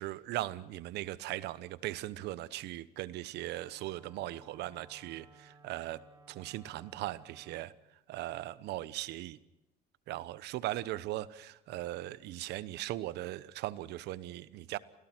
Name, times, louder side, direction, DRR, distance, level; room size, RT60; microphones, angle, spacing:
voice 1, 0.0-6.0 6.3-7.7 8.1-9.4 10.1-14.8, right 15 dB, 80° right, 17 dB, 1.1 m, -39 dB
Wind instrument woodwind instrument, 3.3-7.8, right 3 dB, 20° right, 3.3 m, -59 dB
28.5 x 16.5 x 6.2 m, 0.92 s
cardioid pair, 110°, 17 cm